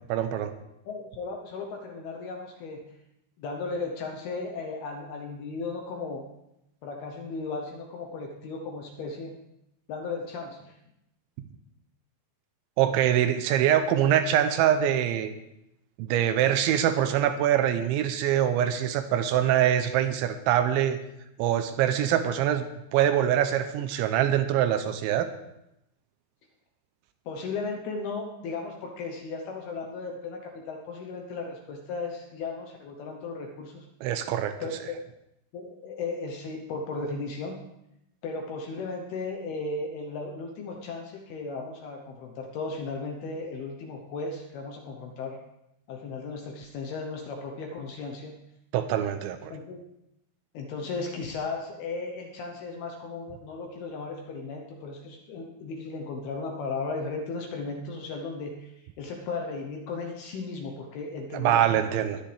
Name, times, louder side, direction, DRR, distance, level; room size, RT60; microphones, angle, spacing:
voice 1, 0.1-0.5 12.8-15.3 16.0-21.0 21.4-22.7 22.9-25.3 34.0-34.6 48.7-49.5 61.3-62.2, right 10 dB, 80° right, 9 dB, 2.9 m, -24 dB
voice 2, 0.9-3.0 3.4-6.3 6.8-9.3 9.9-10.8 27.3-33.9 34.6-35.0 35.5-37.6 38.2-45.4 45.9-48.4 49.5-49.8 50.5-61.8, left 3 dB, 75° left, 2 dB, 2.4 m, -36 dB
21.5 x 10.0 x 3.4 m, 0.84 s
omnidirectional pair, 5.6 m